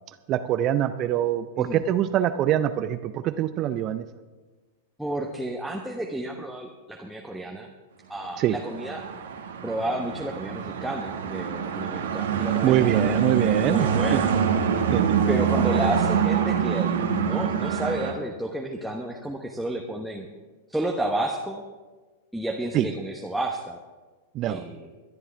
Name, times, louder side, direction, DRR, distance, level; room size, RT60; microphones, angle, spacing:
voice 1, 0.3-4.0 8.4-8.6 12.6-14.2 14.9-15.0 22.7-22.9 24.3-24.6, right 11 dB, 35° right, 12 dB, 0.6 m, -24 dB
voice 2, 5.0-7.7 8.1-9.1 9.6-14.4 15.3-20.3 20.7-21.6 22.3-23.8 24.5-24.9, right 1 dB, ahead, -1 dB, 1.2 m, -31 dB
sound 1, 8.5-18.1, right 7 dB, 65° right, 1.6 m, -25 dB
23.0 x 11.0 x 3.4 m, 1.3 s
figure-of-eight pair, 95°, 0 cm